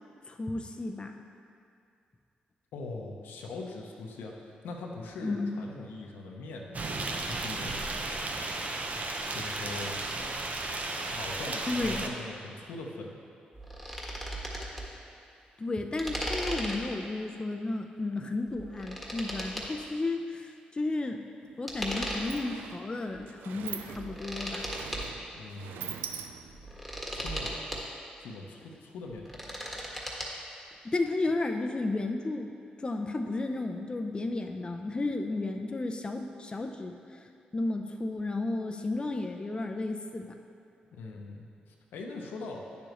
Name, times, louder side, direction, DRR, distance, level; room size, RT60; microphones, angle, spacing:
voice 1, 0.3-1.2 5.2-5.6 11.7-12.0 15.6-21.2 21.6-24.7 30.8-32.5 32.8-37.3 37.5-40.4, left 2 dB, 30° left, 4 dB, 0.5 m, -33 dB
voice 2, 2.7-4.3 4.6-6.9 7.2-7.8 9.3-10.0 11.1-13.2 25.3-26.3 27.1-27.6 28.2-29.4 40.9-42.7, left 3 dB, 85° left, 0 dB, 0.9 m, -41 dB
sound 1, 6.7-12.1, right 2 dB, 45° right, 0.7 m, -34 dB
sound 2, 13.5-14.8 16.0-17.0 18.5-19.7 21.7-22.5 23.1-23.2 23.8-25.1 26.5-27.8 29.1-30.3, right 1 dB, 5° right, 1.6 m, -36 dB
Sliding door, 21.4-21.6 21.8-26.8, right 8 dB, 90° right, 0.3 m, -43 dB
9.3 x 6.9 x 3.1 m, 2.4 s
supercardioid pair, 55°, 3 cm